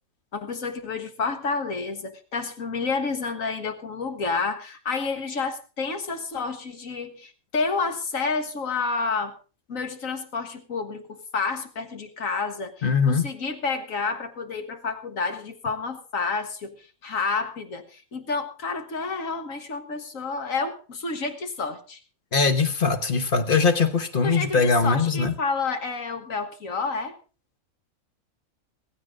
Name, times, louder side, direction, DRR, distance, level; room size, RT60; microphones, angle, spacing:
voice 1, 0.3-9.3 9.7-22.0 24.2-27.1, left 4 dB, 65° left, 1.9 m, -29 dB
voice 2, 12.8-13.3 22.3-25.3, left 4 dB, 40° left, 1.3 m, -21 dB
15.5 x 15.5 x 3.7 m
omnidirectional pair, 1.5 m